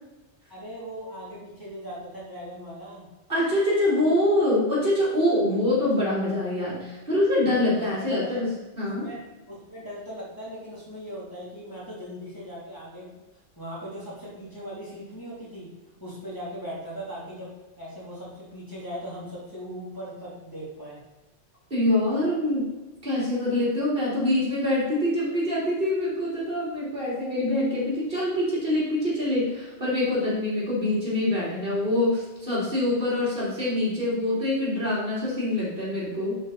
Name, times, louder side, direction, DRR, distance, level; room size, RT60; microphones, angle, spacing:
voice 1, 0.5-3.1 7.8-8.4 8.8-9.2 9.5-13.2 13.6-15.7 16.0-21.0, equal, 15° left, -9 dB, 2.9 m, -39 dB
voice 2, 3.3-8.5 8.8-9.1 21.7-22.7 23.0-36.3, left 1 dB, 45° right, -7 dB, 3.1 m, -25 dB
10.5 x 4.6 x 4.1 m, 1.1 s
omnidirectional pair, 1.3 m